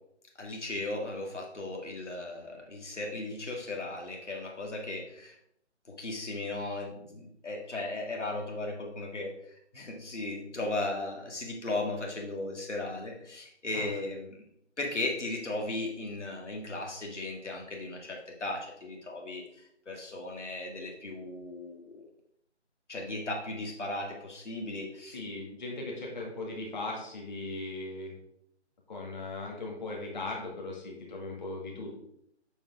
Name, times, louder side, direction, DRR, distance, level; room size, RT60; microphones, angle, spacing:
voice 1, 0.4-5.4 6.0-9.3 9.7-14.4 14.8-19.4 19.9-22.0 22.9-25.2, left 2 dB, 80° left, 0 dB, 2.1 m, -36 dB
voice 2, 25.1-28.2 28.9-31.9, left 2 dB, 40° left, -1 dB, 1.9 m, -38 dB
7.1 x 6.5 x 3.5 m, 0.73 s
figure-of-eight pair, 160°, 35 cm